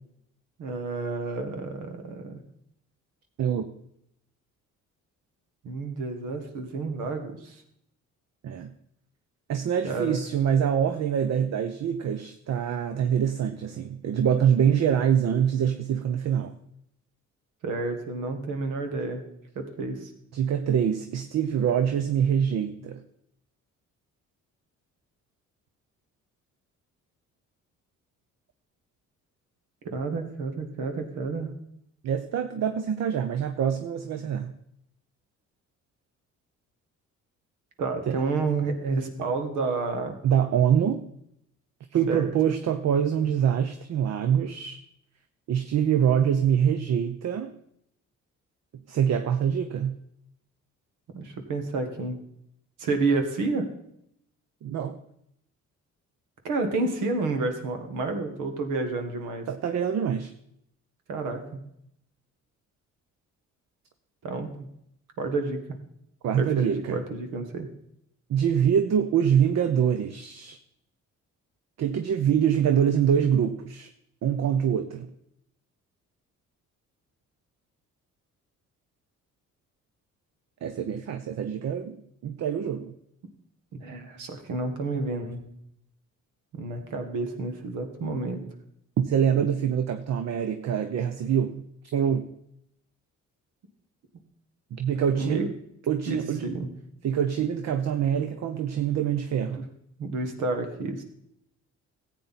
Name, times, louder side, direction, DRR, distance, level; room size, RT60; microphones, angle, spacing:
voice 1, 0.6-2.4 5.6-7.6 9.8-10.2 17.6-19.2 19.6-20.1 29.8-31.5 37.8-40.2 42.1-42.3 51.1-52.2 52.8-53.7 56.4-59.5 61.1-61.6 64.2-64.5 65.2-65.6 66.4-67.7 83.7-85.5 86.5-88.4 95.1-95.5 96.1-96.7 99.6-99.7 100.0-101.0, right 3 dB, 85° right, 6 dB, 1.7 m, -30 dB
voice 2, 9.5-16.5 20.3-23.0 32.0-34.5 38.1-38.2 40.2-41.0 41.9-44.8 45.5-47.5 48.9-50.0 54.6-55.0 59.5-60.3 66.2-67.0 68.3-70.6 71.8-73.9 74.2-75.1 80.6-82.9 89.0-91.6 91.9-92.3 94.7-95.5 95.9-96.5 97.0-99.7, right 8 dB, 60° right, 9 dB, 0.8 m, -25 dB
14.0 x 8.2 x 4.2 m, 0.74 s
cardioid pair, 90°, 30 cm